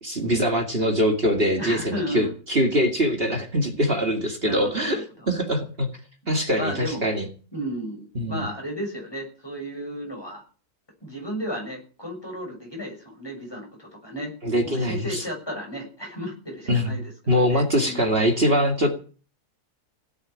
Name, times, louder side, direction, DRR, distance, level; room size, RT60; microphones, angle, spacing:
voice 1, 0.0-5.9 6.3-7.3 8.2-8.5 14.4-15.2 16.7-16.9 17.3-18.9, equal, 35° right, 4 dB, 2.5 m, -23 dB
voice 2, 1.6-2.3 4.4-5.3 6.6-7.1 7.5-10.4 11.0-14.3 14.6-17.1 17.4-18.2, equal, 15° left, 1 dB, 6.8 m, -34 dB
17.0 x 8.1 x 10.0 m, 0.39 s
omnidirectional pair, 1.7 m